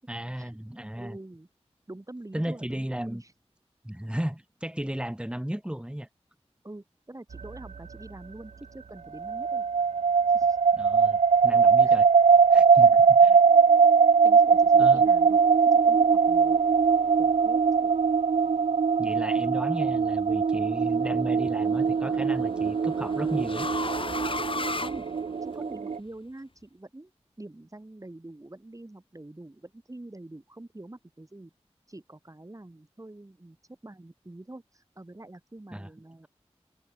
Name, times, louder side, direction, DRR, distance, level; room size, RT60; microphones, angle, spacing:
voice 1, 0.1-1.2 2.3-3.2 3.8-6.1 10.7-12.1 12.5-13.4 14.8-15.1 19.0-23.7 35.7-35.9, equal, 10° right, 6.0 m, -34 dB
voice 2, 1.0-1.5 1.9-3.3 6.6-9.7 10.3-10.6 11.8-12.0 12.8-12.9 14.2-15.4 15.7-16.6 17.2-17.9 24.7-25.1 25.4-27.1 27.4-31.5 31.9-33.6 33.8-36.3, right 2 dB, 30° right, 6.5 m, -45 dB
sound 1, 9.2-26.0, right 5 dB, 85° right, 0.6 m, -21 dB
sound 2, 19.8-20.3 21.8-25.7, left 3 dB, 50° left, 2.1 m, -35 dB
wide cardioid pair, 70°, 11 cm